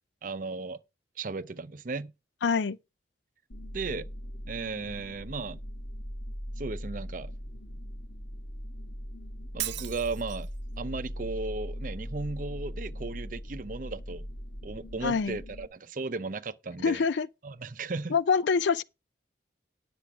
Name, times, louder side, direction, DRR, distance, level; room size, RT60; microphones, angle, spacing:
voice 1, 0.2-0.8 1.2-2.1 3.7-4.1 4.5-5.6 6.6-7.3 9.5-10.5 10.8-14.3 14.6-17.0 17.4-18.2, right 3 dB, 45° right, 0.6 m, -35 dB
voice 2, 2.4-2.8 15.0-15.4 16.8-17.3 18.1-18.8, left 5 dB, 80° left, 0.5 m, -25 dB
sound 1, 3.5-15.7, equal, 60° left, 1.6 m, -40 dB
Shatter, 9.6-10.6, right 14 dB, 85° right, 0.7 m, -36 dB
10.0 x 6.9 x 4.8 m
head